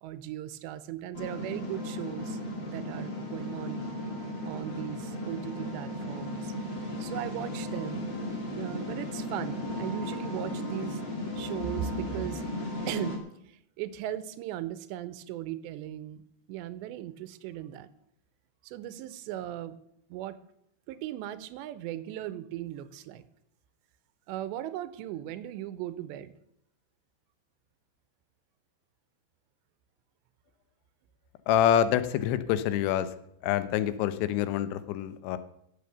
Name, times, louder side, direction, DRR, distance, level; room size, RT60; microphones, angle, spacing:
voice 1, 0.0-3.8 4.4-6.5 7.0-8.0 8.5-11.0 11.4-12.4 12.9-13.2 13.4-17.9 18.6-19.8 20.1-20.4 20.9-23.2 24.3-26.3, right 12 dB, 85° right, 14 dB, 2.9 m, -38 dB
sound 1, 1.1-13.2, left 1 dB, 40° left, 1.7 m, -35 dB
voice 2, 31.5-33.1 33.4-35.4, left 10 dB, 90° left, 13 dB, 3.1 m, -26 dB
15.0 x 7.0 x 6.9 m, 0.74 s
omnidirectional pair, 5.1 m